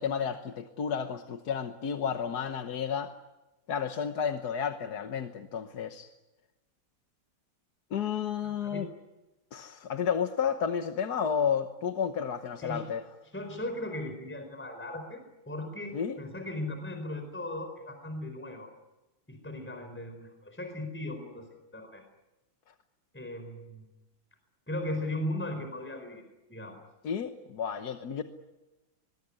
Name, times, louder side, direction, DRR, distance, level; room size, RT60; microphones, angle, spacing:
voice 1, 0.0-3.1 3.7-6.1 7.9-8.9 9.5-13.0 15.9-16.2 27.0-28.2, left 7 dB, 55° left, 7 dB, 1.5 m, -31 dB
voice 2, 8.4-8.9 12.6-12.8 13.3-15.2 15.5-18.7 19.3-21.5 21.7-22.0 23.1-23.9 24.7-26.2 26.5-26.8, left 1 dB, 5° left, 6 dB, 4.4 m, -37 dB
23.0 x 22.5 x 9.8 m, 1.0 s
omnidirectional pair, 2.4 m